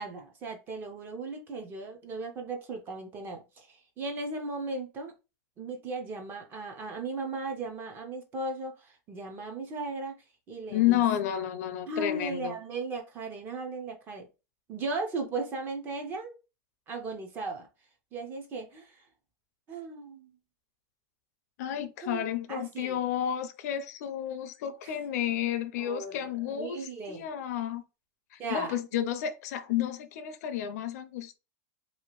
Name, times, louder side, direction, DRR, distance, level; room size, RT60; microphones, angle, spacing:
voice 1, 0.0-5.1 5.6-10.1 10.5-11.0 11.9-14.3 14.7-16.4 16.9-17.7 18.1-19.0 19.7-20.3 22.0-23.0 24.8-25.0 25.8-26.1 26.5-27.3 28.4-29.1, right 3 dB, 20° right, 0.5 m, -37 dB
voice 2, 10.7-12.5 21.6-27.8 28.3-31.4, left 11 dB, 55° left, 0.4 m, -31 dB
2.7 x 2.4 x 2.9 m
supercardioid pair, 175°, 10 cm